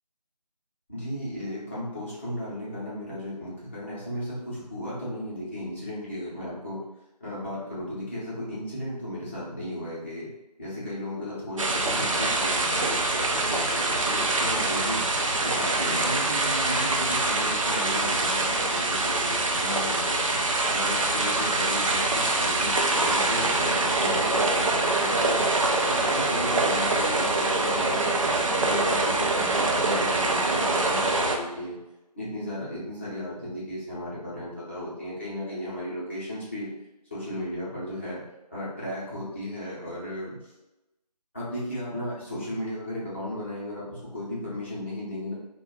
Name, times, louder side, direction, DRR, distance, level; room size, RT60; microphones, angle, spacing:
voice 1, 0.9-6.8 7.2-10.3 10.6-15.0 15.4-20.3 20.7-28.1 28.6-31.8 32.1-36.7 37.1-38.2 38.5-40.4 41.3-45.3, left 1 dB, 20° left, -10 dB, 0.7 m, -35 dB
sound 1, 11.6-31.4, right 2 dB, 50° right, 0.4 m, -25 dB
2.6 x 2.2 x 3.9 m, 0.98 s
figure-of-eight pair, 165°, 21 cm